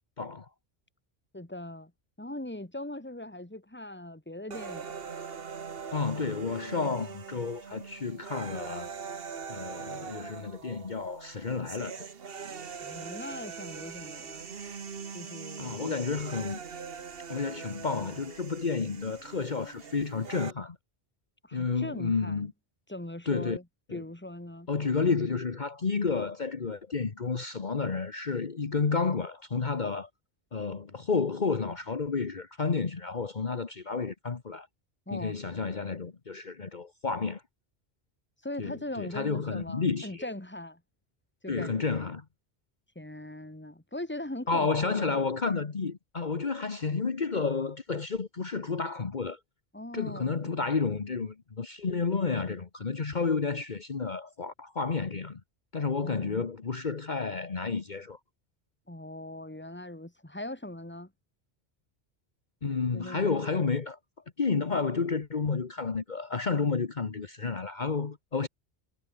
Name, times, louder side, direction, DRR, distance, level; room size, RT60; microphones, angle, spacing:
voice 1, 0.2-0.5 5.9-8.9 9.5-12.0 15.6-16.6 17.3-20.8 21.5-22.5 23.3-23.6 23.9-24.0 24.7-30.1 30.5-34.7 35.1-37.4 38.6-40.2 41.5-42.2 44.5-49.4 49.9-55.4 55.7-58.2 62.6-64.0 64.4-68.5, left 4 dB, 45° left, 1.4 m, -31 dB
voice 2, 1.3-1.9 2.2-4.9 12.8-14.5 15.1-15.9 21.4-22.5 22.9-23.6 23.9-24.7 35.1-35.4 38.4-40.8 41.4-42.0 43.0-45.4 49.7-50.3 55.9-56.5 58.9-61.1 62.9-63.8, left 1 dB, 10° left, 2.3 m, -40 dB
sound 1, 4.5-20.5, right 6 dB, 65° right, 1.4 m, -42 dB
omnidirectional pair, 1.1 m